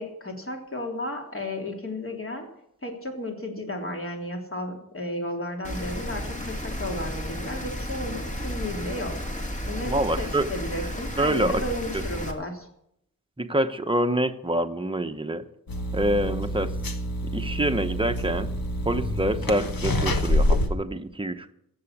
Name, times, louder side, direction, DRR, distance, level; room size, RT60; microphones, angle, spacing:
voice 1, 0.0-2.5 2.8-12.7, left 1 dB, 40° left, 1 dB, 3.3 m, -33 dB
Rain, 5.6-12.3, equal, 20° left, 2.2 m, -33 dB
voice 2, 9.9-10.5 11.2-11.6 13.4-15.4 15.9-16.7 17.3-18.5 18.9-21.5, right 1 dB, 15° right, 8 dB, 1.0 m, -26 dB
sound 1, 15.7-20.7, left 1 dB, 80° left, 1.6 m, -27 dB
15.0 x 7.9 x 8.6 m, 0.77 s
wide cardioid pair, 95°, 34 cm